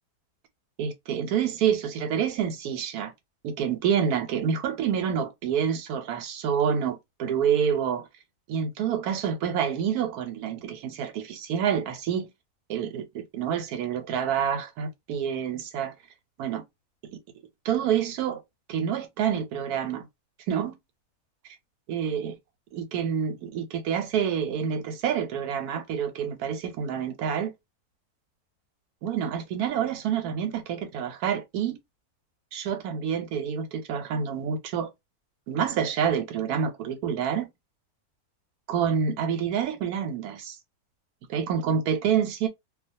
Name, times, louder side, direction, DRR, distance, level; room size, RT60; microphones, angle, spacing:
voice 1, 0.8-3.1 3.4-8.1 8.5-12.3 12.7-15.9 16.4-16.6 17.6-18.4 18.7-20.1 20.5-20.7 21.9-22.3 22.7-27.5 29.0-31.8 32.5-34.9 35.5-37.5 38.7-40.6 41.3-42.5, right 8 dB, 85° right, 1.1 m, -27 dB
2.3 x 2.2 x 2.6 m
omnidirectional pair, 1.6 m